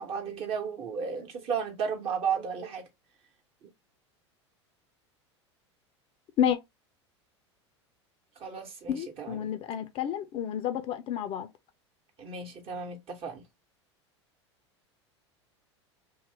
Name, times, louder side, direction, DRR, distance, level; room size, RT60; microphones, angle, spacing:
voice 1, 0.0-2.8 3.6-3.7 8.4-9.5 12.2-13.4, right 6 dB, 40° right, 1.1 m, -34 dB
voice 2, 8.9-11.5, left 9 dB, 40° left, 0.5 m, -30 dB
2.8 x 2.3 x 3.3 m
figure-of-eight pair, 85°, 15 cm